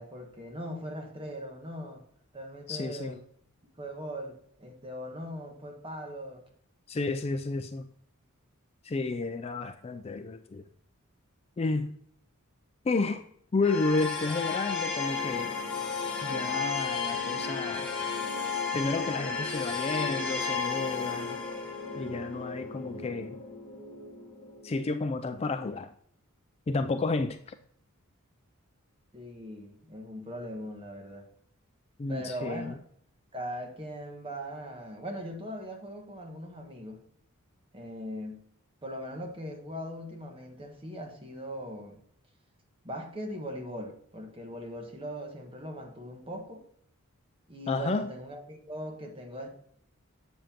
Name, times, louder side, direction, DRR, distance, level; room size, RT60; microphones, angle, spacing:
voice 1, 0.0-2.0 2.3-3.2 3.8-6.4 29.1-31.3 32.1-32.7 33.3-37.0 37.7-38.4 38.8-42.0 42.8-46.6 47.5-49.5, equal, 25° right, 1.3 m, -40 dB
voice 2, 2.7-3.2 6.9-7.9 8.8-10.6 11.6-11.9 12.8-13.3 13.5-15.6 16.2-17.9 18.7-21.4 22.0-23.4 24.6-25.9 26.7-27.5 32.0-32.8 47.7-48.1, left 3 dB, 25° left, 0.3 m, -31 dB
sound 1, 13.6-24.7, left 5 dB, 5° left, 1.4 m, -33 dB
7.5 x 7.1 x 2.9 m
head